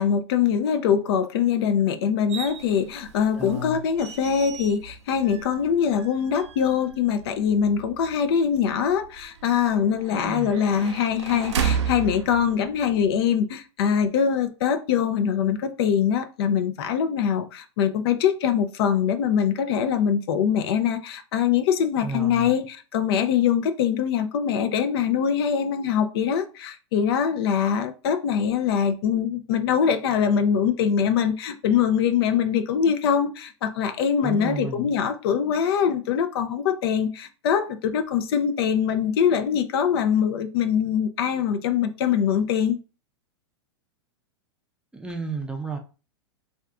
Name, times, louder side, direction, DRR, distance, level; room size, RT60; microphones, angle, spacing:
voice 1, 0.0-42.8, left 8 dB, 60° left, 0.4 m, -23 dB
sound 1, 2.3-13.2, right 7 dB, 85° right, 0.5 m, -34 dB
voice 2, 3.4-3.8 10.1-10.5 22.0-22.5 34.2-34.9 44.9-45.8, right 2 dB, 5° right, 0.5 m, -32 dB
2.5 x 2.3 x 3.4 m
hypercardioid pair, 110°, 14 cm